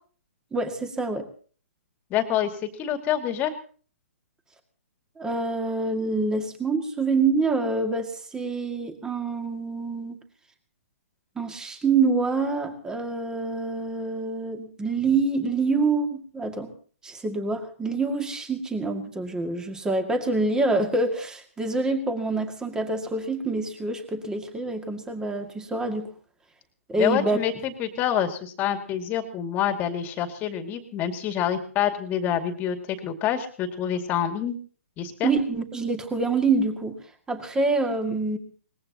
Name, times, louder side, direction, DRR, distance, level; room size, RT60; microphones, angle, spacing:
voice 1, 0.5-1.3 5.2-10.2 11.4-16.7 17.0-26.1 26.9-27.4 35.2-37.0 37.3-38.4, right 3 dB, 10° right, 6 dB, 2.1 m, -26 dB
voice 2, 2.1-2.5 2.8-3.5 27.0-34.5 35.0-35.3, left 10 dB, 25° left, 6 dB, 2.2 m, -27 dB
23.5 x 20.0 x 2.9 m, 0.42 s
hypercardioid pair, 135°, 8 cm